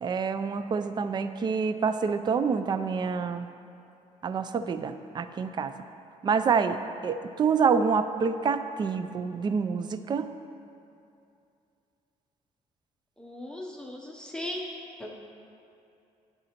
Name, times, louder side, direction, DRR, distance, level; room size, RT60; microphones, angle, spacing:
voice 1, 0.0-3.5 4.2-5.7 6.2-10.3, right 5 dB, 35° right, 10 dB, 0.4 m, -27 dB
voice 2, 13.2-14.6 15.0-15.1, left 1 dB, 5° left, -2 dB, 0.6 m, -37 dB
11.0 x 7.9 x 2.9 m, 2.6 s
cardioid pair, 130°, 13 cm